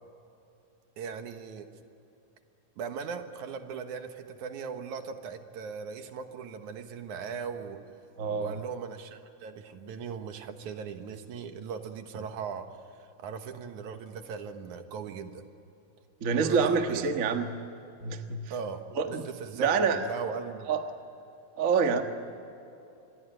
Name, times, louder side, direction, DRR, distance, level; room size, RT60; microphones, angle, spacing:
voice 1, 1.0-1.7 2.8-7.8 8.4-12.7 13.0-15.4 16.4-17.1 18.5-20.7, right 6 dB, 75° right, 7 dB, 2.8 m, -39 dB
voice 2, 8.2-8.6 16.2-17.5 18.0-18.5 19.0-19.2 19.5-20.0 20.7-20.8 21.6-22.0, right 5 dB, 40° right, 6 dB, 1.1 m, -26 dB
27.0 x 21.5 x 9.1 m, 2.8 s
omnidirectional pair, 3.5 m